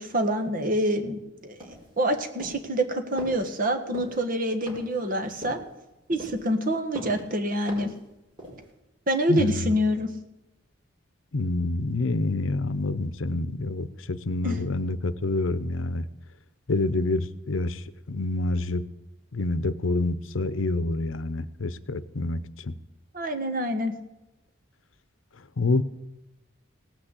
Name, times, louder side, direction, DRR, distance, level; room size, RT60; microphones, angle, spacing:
voice 1, 0.0-1.7 2.0-5.6 6.1-7.9 9.1-10.1 14.4-14.6 23.1-23.9, equal, 45° right, 7 dB, 1.5 m, -26 dB
sound 1, 1.6-2.0 2.4-2.7 3.2-3.4 3.9-4.2 4.7-5.0 5.4-5.7 6.2-6.5 6.9-7.2 7.7-8.0 8.4-8.7, equal, 25° right, 4.8 m, -40 dB
voice 2, 9.3-9.7 11.3-16.1 16.7-17.8 18.1-18.8 19.3-22.7 25.6-25.8, left 2 dB, 85° left, 15 dB, 0.7 m, -27 dB
17.5 x 6.3 x 8.1 m, 0.96 s
head